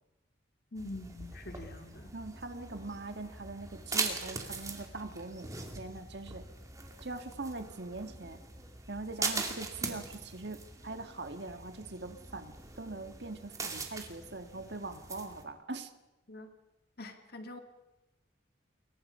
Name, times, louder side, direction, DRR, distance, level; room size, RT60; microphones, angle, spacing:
voice 1, 0.7-2.1 16.3-16.5 17.0-17.6, left 2 dB, 55° left, 6 dB, 1.9 m, -44 dB
sound 1, 0.8-15.4, right 3 dB, 20° right, 2.7 m, -41 dB
voice 2, 2.1-5.5 5.8-6.4 7.0-8.4 8.9-15.9, right 2 dB, 60° right, 7 dB, 1.8 m, -42 dB
29.0 x 23.0 x 5.6 m, 1.0 s
head